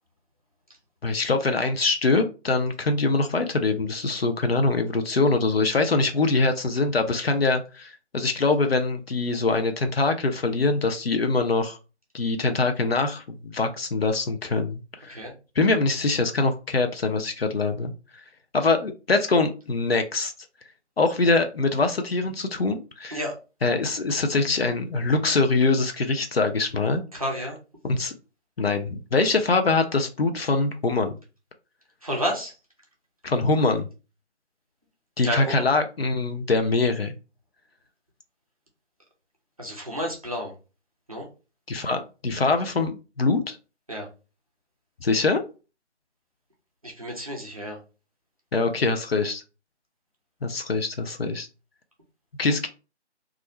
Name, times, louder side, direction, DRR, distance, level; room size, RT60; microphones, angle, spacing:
voice 1, 1.0-11.8 12.1-15.2 15.6-17.9 18.5-20.3 21.0-23.2 23.6-27.0 27.8-28.1 28.6-31.2 33.2-33.9 35.2-37.1 41.7-43.6 45.0-45.4 48.5-49.4 50.4-51.5 52.4-52.7, left 3 dB, 60° left, 6 dB, 0.5 m, -23 dB
voice 2, 27.1-27.6 32.0-32.5 35.2-35.7 39.6-40.5 41.1-41.3 43.9-44.1 46.8-47.8, equal, 30° right, -2 dB, 0.5 m, -30 dB
2.4 x 2.1 x 2.8 m, 0.32 s
figure-of-eight pair, 155°, 35 cm